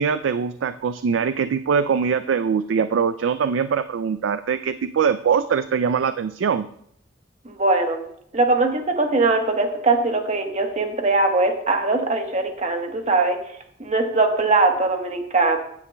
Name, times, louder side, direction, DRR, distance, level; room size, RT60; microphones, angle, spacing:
voice 1, 0.0-6.7, right 6 dB, 85° right, 11 dB, 0.4 m, -22 dB
voice 2, 7.4-8.0 8.3-13.4 13.8-15.6, right 3 dB, 40° right, 4 dB, 1.2 m, -21 dB
15.5 x 9.7 x 2.2 m, 0.69 s
head